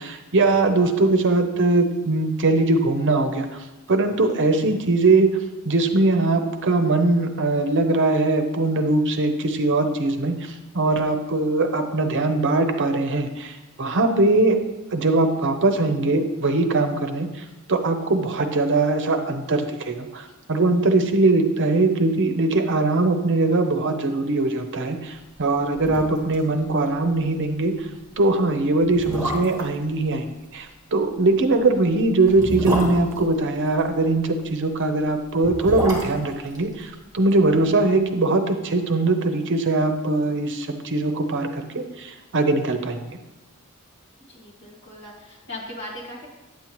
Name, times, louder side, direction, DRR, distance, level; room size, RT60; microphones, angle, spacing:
voice 1, 0.0-3.6 3.9-5.3 5.6-10.3 10.7-14.6 14.9-25.1 25.4-27.7 28.2-30.3 30.5-43.0, right 2 dB, 55° right, 7 dB, 0.7 m, -21 dB
sound 1, 25.8-26.4 26.7-26.8 27.2-27.4 28.1-28.2 28.8-29.8 31.3-33.9 35.2-37.4 37.7-37.8, equal, 15° right, 1.7 m, -29 dB
voice 2, 44.3-46.3, left 1 dB, 55° left, -3 dB, 1.9 m, -38 dB
8.9 x 7.4 x 3.0 m, 1.0 s
head